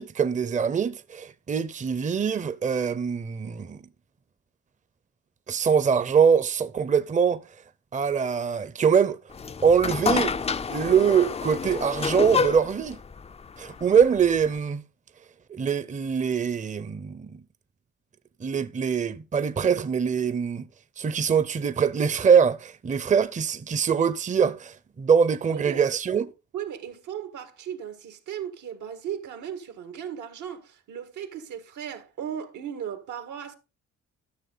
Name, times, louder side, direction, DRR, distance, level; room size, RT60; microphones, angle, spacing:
voice 1, 0.0-3.8 5.5-7.4 7.9-9.2 9.6-10.3 10.7-13.0 13.6-14.8 15.5-17.4 18.4-20.7 21.0-26.3, right 7 dB, 25° right, 0.7 m, -23 dB
sound 1, 9.3-14.6, left 5 dB, 20° left, 0.4 m, -29 dB
voice 2, 25.5-25.8 26.5-33.6, right 9 dB, 80° right, 1.7 m, -36 dB
12.5 x 6.4 x 4.0 m
cardioid pair, 90°, 30 cm